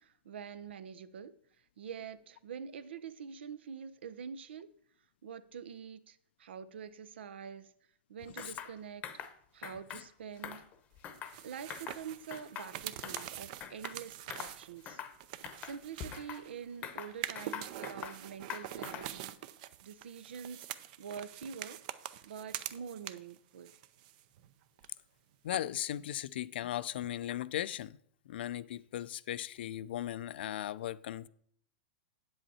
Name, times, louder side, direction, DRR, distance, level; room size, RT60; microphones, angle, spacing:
voice 1, 0.0-1.3 1.8-4.7 5.2-7.7 8.1-9.0 9.5-10.6 11.4-15.0 15.6-19.3 19.8-20.7 21.0-21.8 22.2-23.7, right 7 dB, 85° right, 0.7 m, -45 dB
sound 1, 8.4-8.7 9.0-9.3 9.6-10.0 10.4-11.4 11.7-12.0 12.3-13.3 13.6-14.0 14.3-14.6 14.9-15.2 15.4-16.4 16.8-18.2 18.5-19.2, left 9 dB, 25° left, 0.8 m, -44 dB
sound 2, 11.1-16.6 17.1-23.4 23.7-24.5 24.8-24.9 25.5-25.6, right 12 dB, 45° right, 0.5 m, -45 dB
voice 2, 25.4-28.0 28.3-31.3, left 12 dB, 70° left, 0.4 m, -37 dB
8.8 x 7.9 x 4.3 m
supercardioid pair, 155°, 6 cm